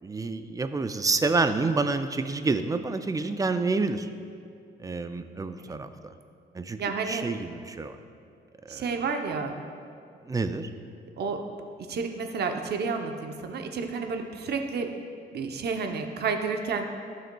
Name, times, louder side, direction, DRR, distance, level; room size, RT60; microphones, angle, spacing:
voice 1, 0.0-4.1 4.8-5.9 6.5-6.8 7.1-8.0 8.6-9.0 10.2-10.7, right 3 dB, 20° right, 9 dB, 0.4 m, -28 dB
voice 2, 6.8-7.3 8.7-9.5 11.2-11.4 11.8-14.9 15.3-16.9, right 5 dB, 55° right, 5 dB, 0.7 m, -30 dB
12.5 x 6.1 x 2.2 m, 2.4 s
cardioid pair, 90°, 20 cm